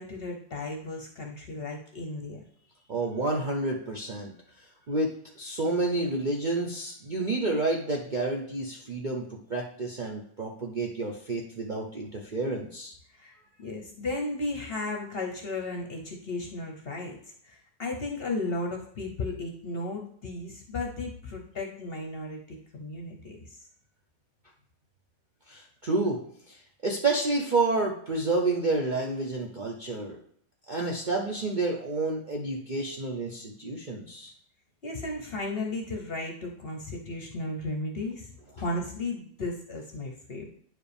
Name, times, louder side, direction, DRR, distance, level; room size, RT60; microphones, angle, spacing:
voice 1, 0.0-2.4 13.1-17.2 17.4-23.7 34.8-40.6, left 2 dB, 45° left, 1 dB, 0.9 m, -35 dB
voice 2, 2.9-4.3 4.9-12.9 25.5-26.2 26.5-30.2 30.7-34.3, right 2 dB, 45° right, -1 dB, 0.6 m, -29 dB
9.5 x 4.8 x 3.4 m, 0.62 s
omnidirectional pair, 1.7 m